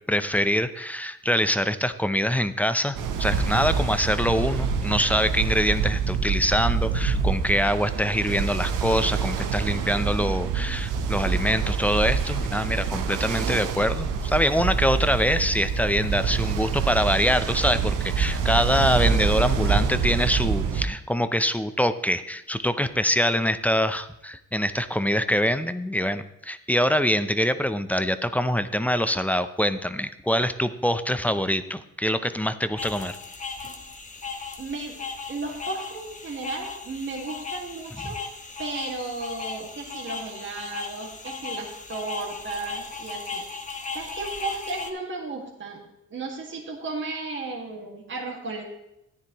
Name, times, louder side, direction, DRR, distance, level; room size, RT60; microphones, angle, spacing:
voice 1, 0.1-33.2 38.0-38.1, equal, 5° left, 11 dB, 0.5 m, -24 dB
Ocean, 2.9-20.9, right 6 dB, 85° right, 0.9 m, -26 dB
voice 2, 10.2-11.4 33.6-33.8 34.6-35.0 35.3-38.2 38.6-43.4 43.9-45.8 46.1-48.6, right 3 dB, 40° right, -1 dB, 2.0 m, -35 dB
sound 1, 32.8-44.9, left 4 dB, 25° left, 1.4 m, -37 dB
13.0 x 9.8 x 3.0 m, 0.85 s
cardioid pair, 90°, 30 cm